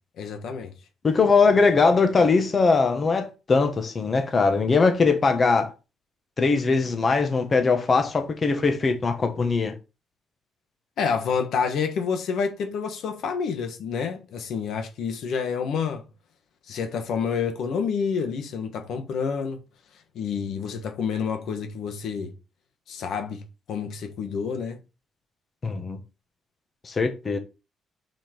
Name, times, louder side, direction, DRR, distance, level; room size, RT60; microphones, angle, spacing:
voice 1, 0.2-0.7 11.0-16.0 16.7-19.6 20.1-22.3 22.9-23.4 23.7-24.8, left 6 dB, 75° left, 1.4 m, -28 dB
voice 2, 1.0-5.7 6.4-9.7 25.6-26.0 26.8-27.4, left 4 dB, 40° left, 1.4 m, -21 dB
5.7 x 5.3 x 4.5 m
cardioid pair, 90°, 0 cm